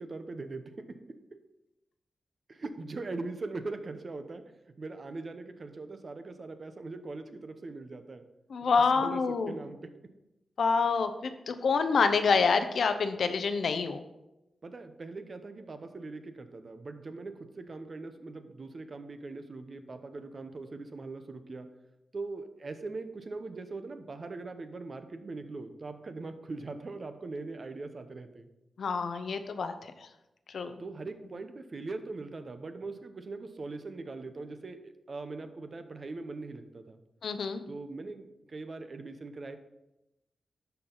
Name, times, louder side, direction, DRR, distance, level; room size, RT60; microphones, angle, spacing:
voice 1, 0.0-1.4 2.5-4.5 4.8-8.3 8.9-10.0 14.6-21.7 22.1-28.5 30.8-37.0 37.7-39.6, right 3 dB, 50° right, 8 dB, 0.8 m, -41 dB
voice 2, 8.5-9.6 10.6-14.0 28.8-29.9 30.5-30.8 37.2-37.6, left 5 dB, 75° left, 9 dB, 0.7 m, -27 dB
12.0 x 4.6 x 3.9 m, 0.92 s
cardioid pair, 85°, 0 cm